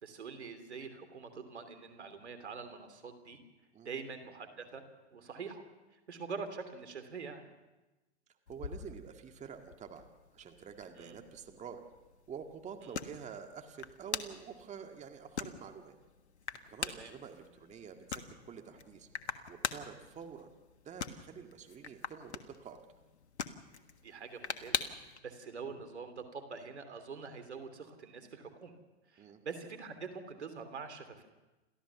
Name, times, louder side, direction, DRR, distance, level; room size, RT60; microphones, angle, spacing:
voice 1, 0.0-3.4 3.8-4.8 5.1-5.6 6.1-7.4 11.0-11.2 12.8-12.9 16.9-17.1 24.0-28.7 29.1-31.3, right 5 dB, 85° right, 8 dB, 3.1 m, -45 dB
sound 1, 8.5-25.2, left 6 dB, 85° left, 1.5 m, -44 dB
voice 2, 8.5-10.0 10.3-11.8 12.3-16.0 16.5-19.1 19.5-20.5 20.9-22.8 29.2-29.4, right 7 dB, 20° right, 5 dB, 1.9 m, -48 dB
29.0 x 14.0 x 7.1 m, 1.1 s
hypercardioid pair, 110°, 33 cm